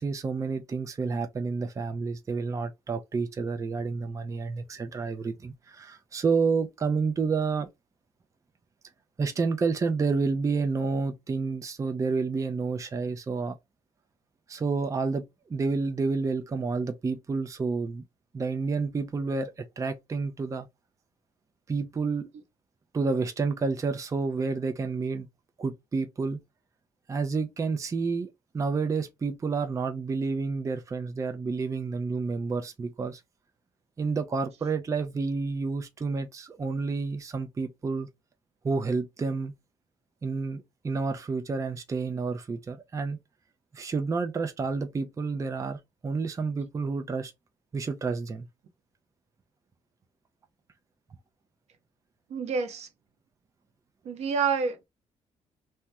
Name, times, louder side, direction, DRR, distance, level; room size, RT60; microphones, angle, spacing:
voice 1, 0.0-7.7 9.2-13.6 14.5-18.0 18.3-20.7 21.7-22.3 22.9-25.3 25.6-26.4 27.1-28.3 28.5-33.2 34.0-38.1 38.6-39.5 40.2-43.2 43.7-47.3 47.7-48.5, right 4 dB, 25° right, 0.5 m, -29 dB
voice 2, 52.3-52.9 54.0-54.8, right 5 dB, 65° right, 0.8 m, -28 dB
2.9 x 2.1 x 3.4 m
cardioid pair, 100°, 12 cm